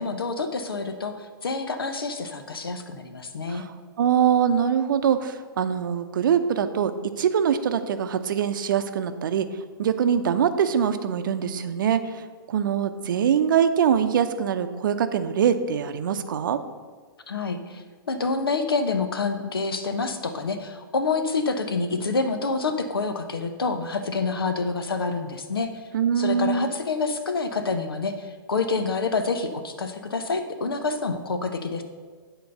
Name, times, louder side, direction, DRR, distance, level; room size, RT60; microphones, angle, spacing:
voice 1, 0.0-3.6 17.3-25.8 26.2-31.8, left 4 dB, 80° left, 8 dB, 0.9 m, -27 dB
voice 2, 4.0-6.9 7.2-9.5 9.8-16.6 25.9-26.7, right 8 dB, 60° right, 10 dB, 0.7 m, -23 dB
9.3 x 4.0 x 6.6 m, 1.5 s
figure-of-eight pair, 120°, 12 cm